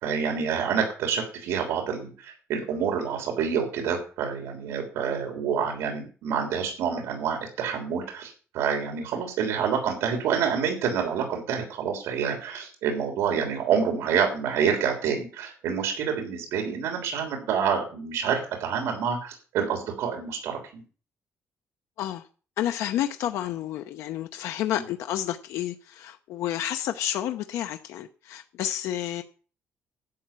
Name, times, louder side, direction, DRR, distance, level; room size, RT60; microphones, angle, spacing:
voice 1, 0.0-20.8 24.7-24.8, right 7 dB, 80° right, 3.4 m, -27 dB
voice 2, 22.6-29.2, left 11 dB, 90° left, 0.7 m, -30 dB
11.5 x 5.6 x 8.9 m
cardioid pair, 175°, 5 cm